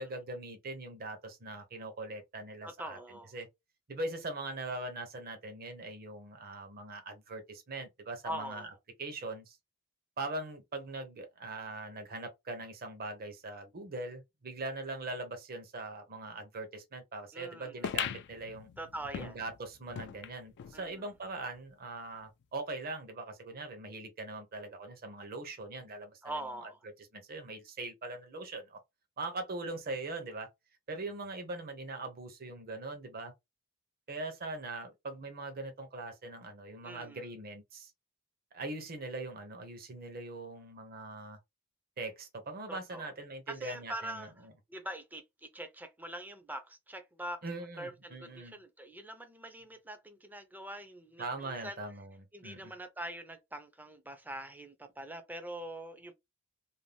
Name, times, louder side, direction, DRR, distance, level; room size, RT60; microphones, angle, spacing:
voice 1, 0.0-3.0 3.3-3.5 3.9-8.7 9.0-9.6 10.2-18.7 19.2-26.2 27.1-28.8 29.2-30.5 30.9-33.3 34.1-37.9 38.5-41.4 42.0-44.3 47.4-48.6 51.2-52.7, right 2 dB, 45° right, 0.7 m, -41 dB
voice 2, 2.6-3.3 8.2-8.7 17.3-17.9 18.8-19.4 20.7-21.1 26.2-26.8 36.8-37.2 42.7-43.1 43.5-47.4 47.8-51.8 52.3-56.1, right 1 dB, 10° right, 0.5 m, -43 dB
sound 1, 17.8-20.8 21.2-21.3 21.5-21.6 22.4-22.5, left 9 dB, 50° left, 0.3 m, -40 dB
2.6 x 2.1 x 3.2 m
head